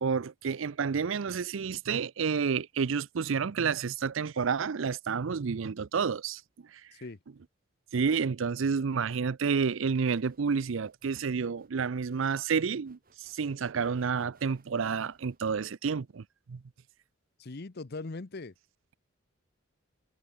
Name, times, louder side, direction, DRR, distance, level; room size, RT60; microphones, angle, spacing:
voice 1, 0.0-6.4 7.9-16.6, right 5 dB, 65° right, 0.5 m, -30 dB
Rhythm sencer, 10.2-15.9, right 3 dB, 45° right, 4.7 m, -67 dB
voice 2, 17.4-18.5, left 3 dB, 50° left, 0.8 m, -40 dB
head